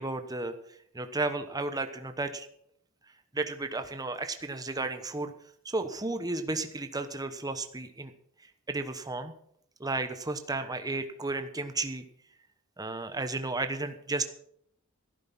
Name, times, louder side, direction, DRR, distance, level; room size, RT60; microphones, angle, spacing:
voice 1, 0.0-2.5 3.3-5.3 5.6-8.1 8.7-9.3 9.8-12.0 12.8-14.3, right 2 dB, 15° right, 8 dB, 1.0 m, -33 dB
13.5 x 11.5 x 5.6 m, 0.67 s
head